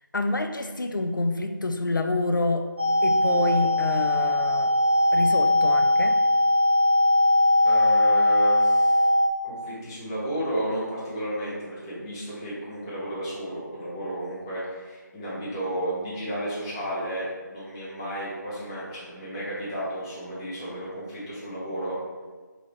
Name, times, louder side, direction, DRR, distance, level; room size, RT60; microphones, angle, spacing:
voice 1, 0.1-2.7 3.0-4.7 5.1-6.2, left 2 dB, 80° left, 6 dB, 0.5 m, -27 dB
sound 1, 2.8-9.3, left 1 dB, 30° right, 0.6 m, -20 dB
voice 2, 7.6-9.0 9.4-22.0, right 1 dB, 10° left, -10 dB, 0.7 m, -32 dB
4.7 x 2.8 x 3.1 m, 1.4 s
figure-of-eight pair, 160°, 11 cm